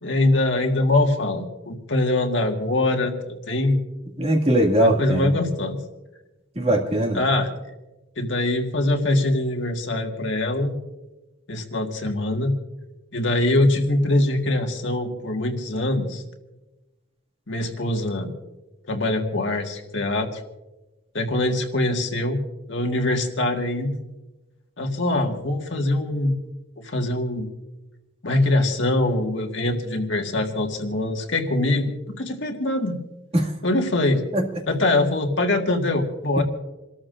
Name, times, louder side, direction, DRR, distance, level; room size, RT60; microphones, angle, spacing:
voice 1, 0.0-3.8 4.8-5.8 6.6-6.8 7.1-7.5 8.2-10.7 11.5-12.5 13.1-16.2 17.5-18.3 18.9-20.4 21.1-22.4 22.7-24.0 24.8-26.3 26.8-27.5 28.2-31.9 32.2-33.0 33.6-34.2 34.7-36.4, left 2 dB, 65° left, 3 dB, 1.7 m, -23 dB
voice 2, 4.2-5.3 6.6-7.2 33.3-33.5 34.3-34.4, right 1 dB, 30° right, 0 dB, 2.1 m, -20 dB
28.5 x 13.5 x 2.6 m, 1.1 s
head